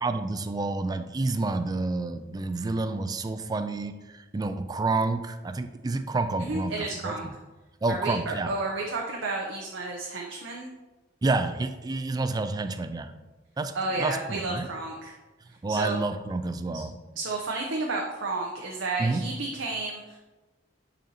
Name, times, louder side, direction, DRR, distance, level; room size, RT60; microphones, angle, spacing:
voice 1, 0.0-7.3 7.8-8.5 11.2-13.1 13.6-14.7 15.6-16.9 19.0-19.3, right 3 dB, 20° right, 9 dB, 0.3 m, -29 dB
voice 2, 6.4-7.3 7.9-10.7 13.7-15.1 15.7-16.0 16.7-16.8 17.2-20.2, right 3 dB, 80° right, -1 dB, 0.7 m, -31 dB
9.1 x 4.2 x 2.8 m, 1.2 s
head